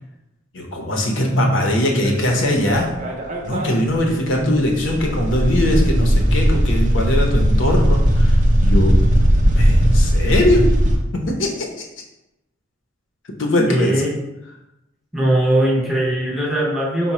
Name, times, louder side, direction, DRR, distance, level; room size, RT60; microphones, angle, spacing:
voice 1, 0.5-2.9 3.4-9.0 9.5-10.7 11.1-11.7 13.4-14.0, left 1 dB, 70° left, 1 dB, 0.8 m, -20 dB
sound 1, 2.0-3.7 3.9-4.0 4.4-11.0, equal, 40° right, 0.6 m, -17 dB
voice 2, 13.7-14.1 15.1-17.1, right 1 dB, ahead, -5 dB, 0.7 m, -20 dB
4.7 x 2.2 x 4.2 m, 0.93 s
head